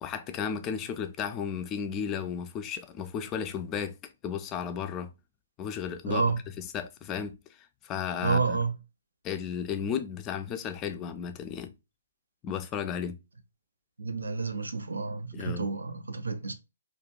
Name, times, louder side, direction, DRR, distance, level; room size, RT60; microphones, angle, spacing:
voice 1, 0.0-4.0 4.2-5.1 5.6-8.6 9.2-11.7 12.4-13.2 15.3-15.7, left 7 dB, 25° left, 0.3 m, -34 dB
voice 2, 6.1-6.4 8.2-8.7 14.0-16.5, right 4 dB, 85° right, 0.4 m, -29 dB
2.4 x 2.2 x 2.9 m
hypercardioid pair, 135°, 0 cm